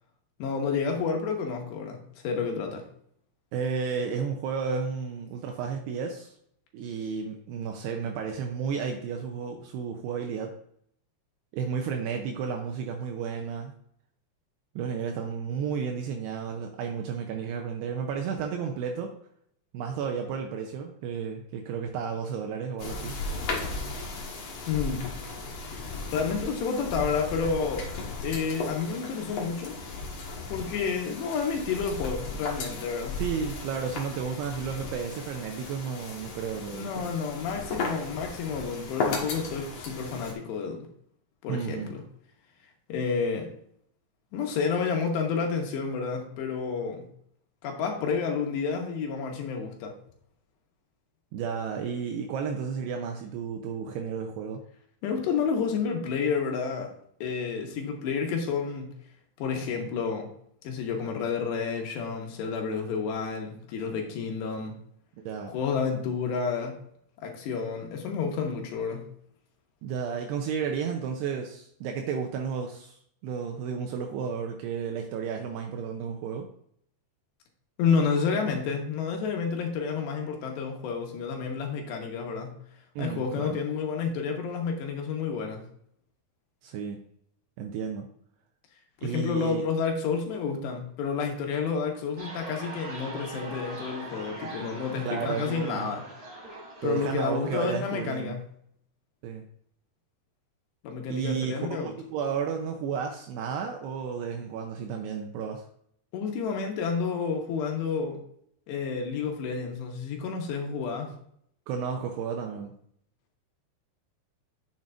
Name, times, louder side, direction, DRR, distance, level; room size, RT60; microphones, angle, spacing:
voice 1, 0.4-2.8 24.7-25.1 26.1-27.9 28.2-29.8 30.5-33.2 36.7-40.9 41.4-42.0 42.9-43.5 44.3-47.1 47.6-49.9 55.0-56.9 57.2-58.9 59.4-60.3 60.6-64.8 65.5-66.8 67.2-69.1 77.8-82.6 83.0-85.6 89.0-96.1 96.8-98.4 100.8-101.9 106.1-108.2 108.7-111.1, left 5 dB, 80° left, 2 dB, 3.3 m, -30 dB
voice 2, 3.5-6.3 6.7-10.5 11.5-13.7 14.8-19.1 19.7-23.2 33.2-37.1 41.5-41.9 51.3-54.6 65.3-65.5 69.8-76.5 83.0-83.6 86.6-87.0 87.6-88.1 89.0-89.6 95.0-96.0 96.8-98.4 99.2-99.4 101.1-105.7 111.7-112.8, right 6 dB, 80° right, 3 dB, 2.6 m, -32 dB
sound 1, 22.8-40.3, left 3 dB, 60° left, 1.8 m, -36 dB
sound 2, 92.2-98.1, right 2 dB, 15° right, 2.4 m, -42 dB
9.3 x 7.5 x 2.5 m, 0.67 s
omnidirectional pair, 5.0 m